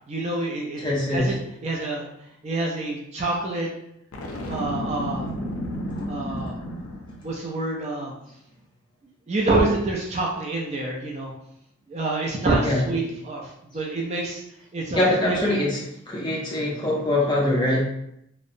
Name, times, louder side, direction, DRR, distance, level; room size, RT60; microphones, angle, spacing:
voice 1, 0.1-0.8 1.1-1.3 1.6-2.1 2.4-3.7 4.5-5.4 6.1-6.6 7.2-8.1 9.3-11.3 11.9-14.4 14.7-15.6, right 2 dB, 30° right, -1 dB, 0.3 m, -27 dB
voice 2, 0.8-1.3 12.6-12.8 14.9-15.8 16.1-17.8, left 1 dB, 20° left, -4 dB, 0.5 m, -23 dB
Boom, 4.1-7.3, left 1 dB, 80° left, 0.4 m, -32 dB
2.7 x 2.0 x 2.5 m, 0.78 s
head